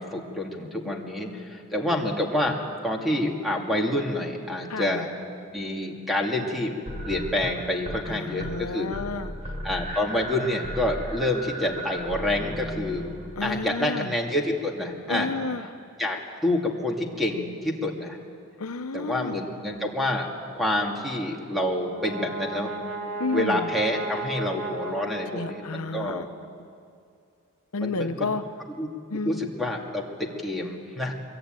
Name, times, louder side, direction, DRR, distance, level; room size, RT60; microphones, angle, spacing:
voice 1, 0.0-2.6 2.8-5.2 5.5-6.7 7.1-8.9 9.6-13.1 13.4-15.3 16.0-18.2 18.9-20.3 20.5-22.7 23.3-26.3 27.8-28.3 28.8-28.9 29.2-31.1, left 1 dB, ahead, 0 dB, 2.4 m, -28 dB
voice 2, 4.7-5.1 8.1-9.5 13.4-14.1 15.1-15.7 18.6-19.4 23.2-23.7 25.3-26.3 27.7-28.5 29.1-29.4, left 3 dB, 80° left, 9 dB, 0.9 m, -31 dB
sound 1, 6.9-8.1 8.3-8.7 8.9-13.7, equal, 30° right, 3.6 m, -36 dB
Brass instrument, 21.6-26.0, right 2 dB, 75° right, 2.2 m, -35 dB
23.5 x 23.0 x 9.0 m, 2.4 s
head